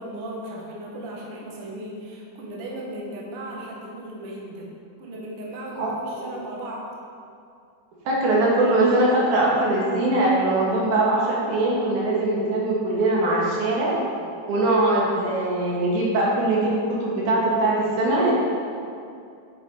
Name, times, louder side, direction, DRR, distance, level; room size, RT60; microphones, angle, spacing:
voice 1, 0.0-4.7 5.0-6.9, right 1 dB, 55° right, -3 dB, 2.0 m, -36 dB
voice 2, 5.8-6.3 8.0-13.9 14.5-18.3, right 2 dB, 85° right, -5 dB, 3.2 m, -21 dB
9.3 x 7.0 x 4.4 m, 2.4 s
omnidirectional pair, 3.4 m